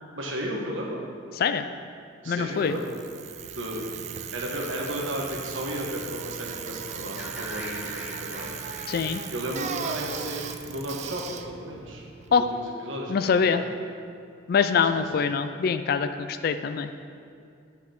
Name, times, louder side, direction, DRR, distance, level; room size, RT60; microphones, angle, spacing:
voice 1, 0.1-1.1 2.2-3.0 3.5-4.0 4.3-8.6 9.3-12.0 12.3-13.6 14.9-15.2, equal, 85° right, -1 dB, 1.3 m, -34 dB
voice 2, 2.3-2.8 8.9-9.2 12.3-12.4 13.1-13.6 14.5-16.9, left 6 dB, 50° left, 9 dB, 0.3 m, -24 dB
Bicycle, 2.6-12.7, right 7 dB, 35° right, 0.3 m, -38 dB
sound 1, 7.2-11.1, equal, 10° right, 1.0 m, -42 dB
8.0 x 5.9 x 4.3 m, 2.4 s
head